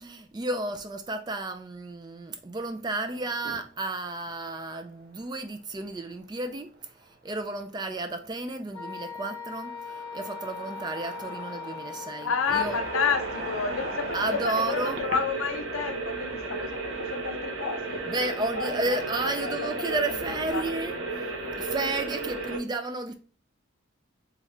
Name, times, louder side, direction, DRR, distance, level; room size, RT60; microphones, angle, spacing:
voice 1, 0.0-12.8 14.1-15.0 18.1-21.0 21.6-23.1, right 2 dB, 20° right, 0.3 m, -32 dB
sound 1, 3.0-20.5, right 1 dB, 50° right, 1.3 m, -44 dB
Wind instrument woodwind instrument, 8.7-13.1, left 6 dB, 25° left, 0.9 m, -40 dB
voice 2, 12.2-19.0 19.4-20.0 20.5-20.7, left 6 dB, 85° left, 0.5 m, -31 dB
sound 2, 12.4-22.6, right 3 dB, 75° right, 0.9 m, -34 dB
3.6 x 3.1 x 3.2 m
head